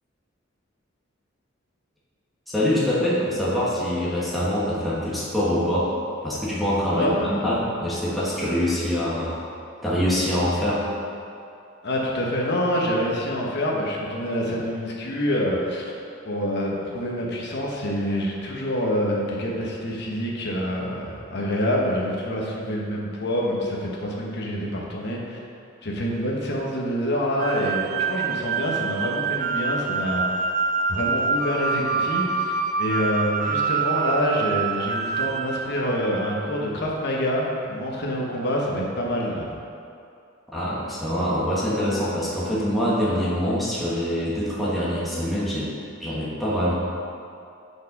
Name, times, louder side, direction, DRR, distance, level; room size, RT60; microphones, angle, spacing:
voice 1, 2.5-6.0 6.2-9.4 9.8-10.9 40.5-45.7 46.0-46.7, equal, ahead, -9 dB, 1.2 m, -24 dB
voice 2, 6.9-7.5 11.8-15.9 16.2-25.4 25.8-30.4 30.9-39.5, equal, 55° left, -2 dB, 1.2 m, -26 dB
sound 1, 27.4-36.6, right 5 dB, 40° right, 0.4 m, -26 dB
6.4 x 5.2 x 5.3 m, 2.6 s
head